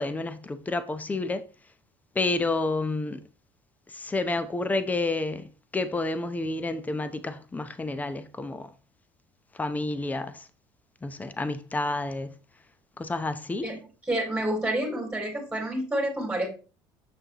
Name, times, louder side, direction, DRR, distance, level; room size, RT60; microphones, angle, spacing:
voice 1, 0.0-1.4 2.1-3.2 3.9-8.7 9.6-10.5 11.0-12.3 13.0-13.7, left 2 dB, 15° left, 0.8 m, -30 dB
voice 2, 13.6-16.5, right 1 dB, 10° right, 3.3 m, -29 dB
7.5 x 6.3 x 3.0 m
supercardioid pair, 105°, 10 cm